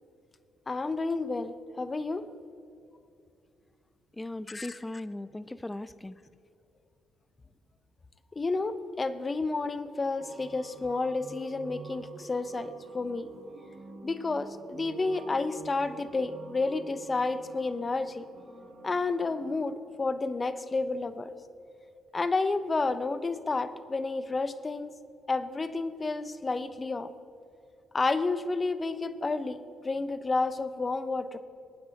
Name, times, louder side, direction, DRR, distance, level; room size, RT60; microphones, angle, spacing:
voice 1, 0.7-2.3 4.5-4.8 8.3-13.3 14.0-18.3 18.8-21.3 22.1-24.9 25.3-27.1 27.9-29.6 29.8-31.4, left 3 dB, 30° left, 13 dB, 0.9 m, -30 dB
voice 2, 4.1-6.2, left 2 dB, 15° left, 16 dB, 0.6 m, -38 dB
sound 1, 10.2-19.7, right 3 dB, 60° right, 2.8 m, -48 dB
22.5 x 9.8 x 4.1 m, 2.7 s
hypercardioid pair, 50°, 0 cm